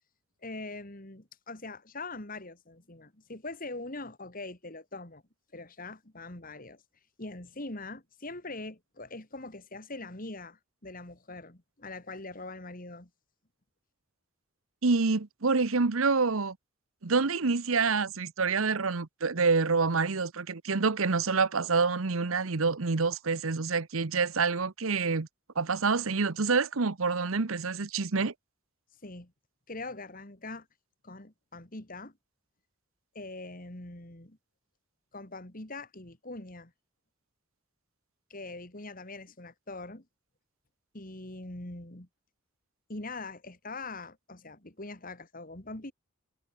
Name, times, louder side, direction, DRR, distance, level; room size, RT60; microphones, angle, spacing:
voice 1, 0.4-5.2 5.5-6.8 7.2-13.1 29.0-29.3 29.7-30.7 31.0-32.1 33.1-34.4 35.1-36.7 38.3-40.0 40.9-42.1 42.9-45.9, left 2 dB, 40° left, 2.5 m, -42 dB
voice 2, 14.8-16.6 17.0-25.3 25.6-28.3, right 4 dB, 70° right, 1.0 m, -27 dB
head